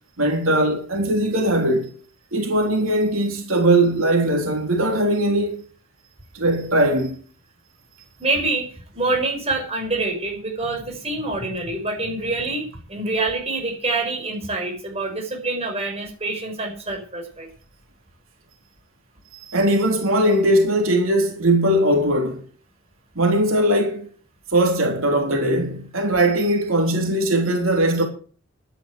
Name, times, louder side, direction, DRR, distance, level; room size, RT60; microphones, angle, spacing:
voice 1, 0.2-1.9 2.3-5.6 6.3-7.2 19.4-22.4 23.2-24.1 24.5-28.1, right 1 dB, 90° right, 3.4 m, -20 dB
voice 2, 8.2-17.5, right 2 dB, 30° right, 5.9 m, -26 dB
12.0 x 10.0 x 8.1 m
head